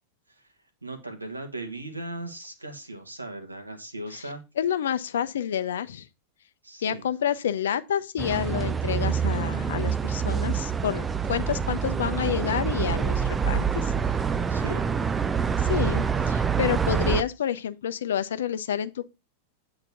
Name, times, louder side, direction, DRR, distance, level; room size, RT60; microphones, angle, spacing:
voice 1, 0.8-4.4 6.6-7.1 14.5-15.0, right 2 dB, 85° right, 1.6 m, -37 dB
voice 2, 4.6-6.1 6.8-13.9 15.6-19.1, left 9 dB, 60° left, 0.7 m, -29 dB
sound 1, 8.2-17.2, right 6 dB, 15° right, 0.5 m, -26 dB
9.1 x 3.9 x 5.8 m
figure-of-eight pair, 90°, 0 cm